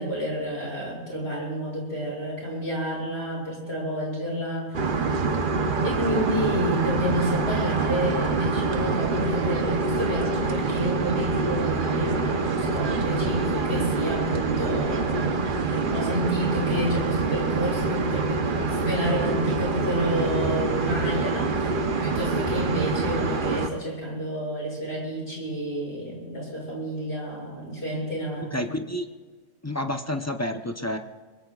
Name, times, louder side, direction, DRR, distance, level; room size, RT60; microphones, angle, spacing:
voice 1, 0.0-4.8 5.8-15.4 15.9-28.7, equal, 45° left, -3 dB, 7.2 m, -30 dB
sound 1, 4.7-23.7, right 4 dB, 40° right, 1.0 m, -25 dB
voice 2, 28.5-29.1 29.6-31.0, left 1 dB, 20° left, 5 dB, 0.5 m, -29 dB
23.5 x 21.5 x 2.4 m, 1.4 s
omnidirectional pair, 1.5 m